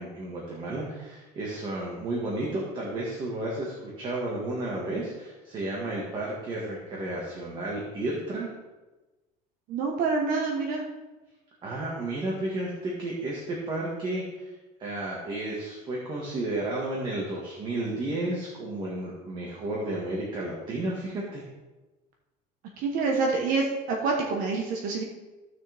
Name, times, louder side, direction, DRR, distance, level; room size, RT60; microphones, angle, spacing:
voice 1, 0.0-8.5 11.6-14.5 14.8-21.4, right 2 dB, 30° right, -3 dB, 1.8 m, -32 dB
voice 2, 9.7-10.8 22.8-25.0, right 4 dB, 55° right, 0 dB, 1.3 m, -27 dB
15.5 x 6.4 x 3.5 m, 1.1 s
cardioid pair, 180°, 17 cm